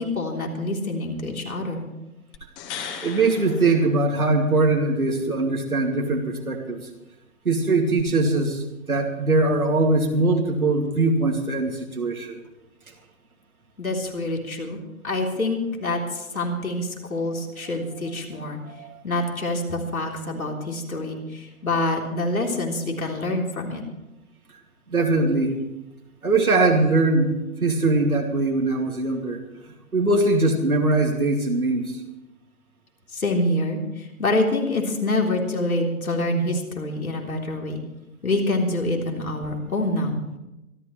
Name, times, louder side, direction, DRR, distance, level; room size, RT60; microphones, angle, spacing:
voice 1, 0.0-1.9 13.8-18.6 19.0-23.8 33.1-37.8 38.2-40.2, left 2 dB, 80° left, 0 dB, 3.7 m, -26 dB
sound 1, 2.3-4.6 8.0-8.1, left 7 dB, 20° left, 1.6 m, -38 dB
voice 2, 3.0-6.9 7.4-8.6 8.9-12.4 18.7-19.0 24.9-25.6 26.2-27.3 27.6-29.4 29.9-32.0, right 2 dB, 90° right, 0 dB, 2.6 m, -21 dB
25.5 x 12.0 x 3.3 m, 0.96 s
figure-of-eight pair, 140°, 42 cm